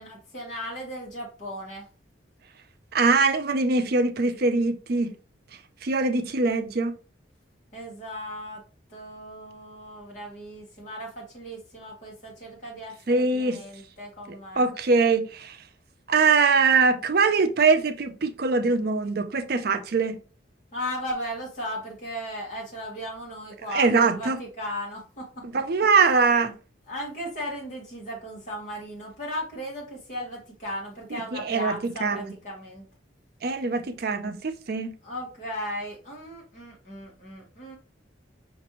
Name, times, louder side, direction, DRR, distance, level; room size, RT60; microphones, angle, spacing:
voice 1, 0.0-1.9 7.7-8.6 8.9-14.6 20.7-25.4 26.2-26.4 26.9-32.8 35.0-37.8, equal, 40° left, 1.3 m, -36 dB
voice 2, 2.9-5.1 5.8-6.9 13.1-13.6 14.3-15.6 16.1-20.2 23.7-24.4 25.5-26.5 31.1-32.2 33.4-34.9, right 4 dB, 55° right, 0.5 m, -23 dB
5.1 x 2.6 x 2.9 m
head